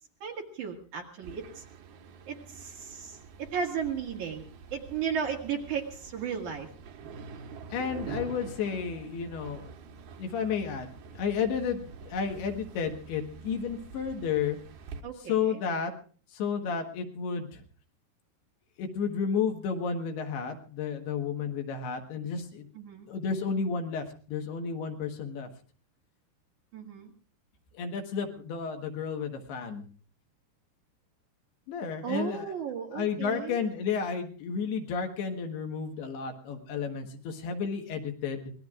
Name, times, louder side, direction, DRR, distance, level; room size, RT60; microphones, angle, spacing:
voice 1, 0.2-1.6 2.3-6.7 15.0-15.6 22.7-23.1 26.7-27.1 32.0-33.6, right 7 dB, 55° right, 0 dB, 2.9 m, -35 dB
sound 1, 1.2-15.0, right 5 dB, 70° right, 3.3 m, -46 dB
voice 2, 7.7-9.7 10.2-14.6 15.3-15.9 16.3-17.6 18.8-22.7 23.1-25.5 27.7-29.9 31.7-32.5 32.9-38.5, left 6 dB, 75° left, 4 dB, 3.4 m, -32 dB
25.5 x 19.5 x 2.5 m, 0.42 s
omnidirectional pair, 4.7 m